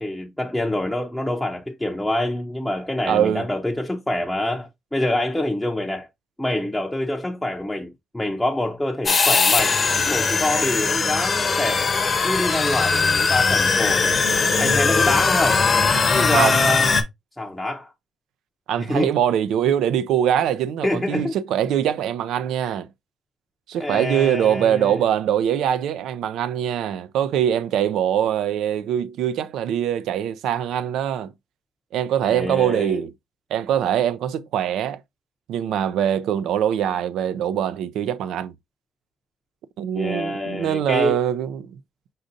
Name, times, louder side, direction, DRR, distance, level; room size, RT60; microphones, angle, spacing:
voice 1, 0.0-6.1 6.4-11.9 12.2-14.2 14.6-15.6 16.1-17.0 17.4-17.9 18.8-19.1 20.8-21.4 23.8-25.0 32.2-33.0 39.9-41.2, left 1 dB, 5° left, 0.6 m, -26 dB
voice 2, 3.1-3.5 16.3-16.6 18.7-22.9 23.7-31.3 31.9-33.1 33.5-35.0 35.5-38.5 39.8-41.7, right 10 dB, 85° right, 0.4 m, -23 dB
sound 1, 9.1-17.0, left 4 dB, 35° left, 0.8 m, -20 dB
5.1 x 3.9 x 2.6 m
cardioid pair, 90°, 0 cm